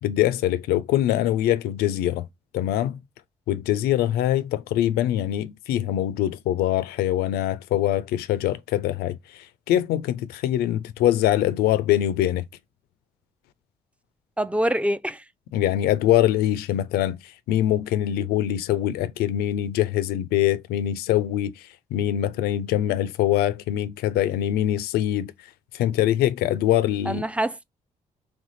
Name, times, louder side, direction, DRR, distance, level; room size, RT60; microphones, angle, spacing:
voice 1, 0.0-2.2 2.5-3.0 3.5-12.5 15.5-25.3 25.7-27.2, left 12 dB, 85° left, 0.5 m, -23 dB
voice 2, 14.4-15.2 27.1-27.6, right 1 dB, 10° right, 0.5 m, -25 dB
3.5 x 3.2 x 4.0 m
supercardioid pair, 60°, 16 cm